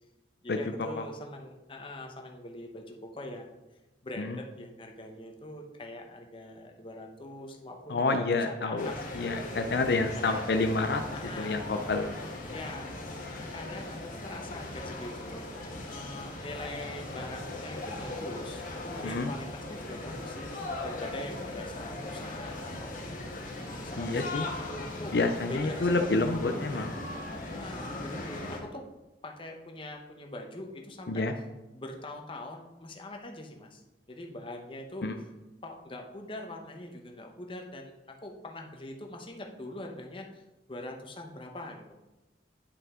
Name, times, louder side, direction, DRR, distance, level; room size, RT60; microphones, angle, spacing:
voice 1, 0.4-3.6 4.0-9.3 10.2-10.4 11.1-11.6 12.4-12.9 13.3-15.4 15.9-20.5 20.8-25.1 25.5-26.1 27.5-28.8 29.2-31.2 31.7-33.8 34.1-35.1 35.6-40.4 40.7-42.1, left 1 dB, 30° left, 2 dB, 0.9 m, -43 dB
voice 2, 7.9-11.0 11.4-12.1 19.0-19.3 24.0-24.5 25.1-27.0 31.1-31.3 35.0-35.2, left 3 dB, 65° left, 5 dB, 0.5 m, -28 dB
sound 1, 8.8-28.6, left 2 dB, 50° left, 1.3 m, -39 dB
10.0 x 5.5 x 3.7 m, 1.1 s
head